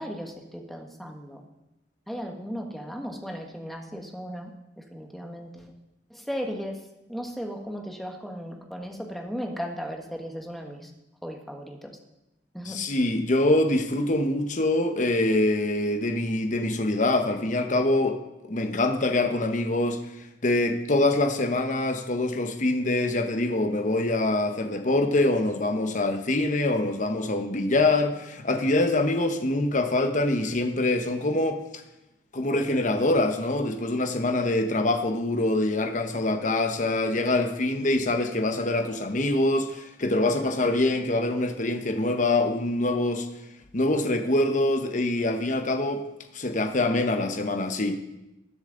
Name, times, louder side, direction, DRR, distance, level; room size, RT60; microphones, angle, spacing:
voice 1, 0.0-1.4 2.1-4.5 4.8-5.7 6.1-6.8 7.1-10.9 11.2-12.0 12.5-12.8, equal, ahead, 2 dB, 1.2 m, -36 dB
voice 2, 12.6-18.2 18.5-20.0 20.4-31.6 32.3-43.3 43.7-46.0 46.3-47.9, left 2 dB, 45° left, 6 dB, 1.0 m, -24 dB
19.5 x 7.2 x 3.9 m, 0.93 s
head